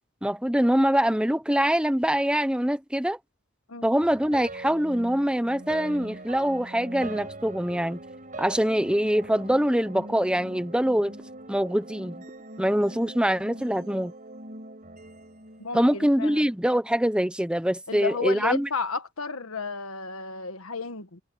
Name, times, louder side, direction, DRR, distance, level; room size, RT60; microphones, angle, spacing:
voice 1, 0.2-3.2 3.8-8.0 8.4-11.2 11.5-12.2 12.6-14.1 15.7-18.7, equal, 5° right, 1.1 m, -24 dB
sound 1, 4.0-16.3, right 2 dB, 40° right, 5.0 m, -42 dB
voice 2, 15.6-16.5 17.9-21.2, left 4 dB, 85° left, 1.5 m, -32 dB
head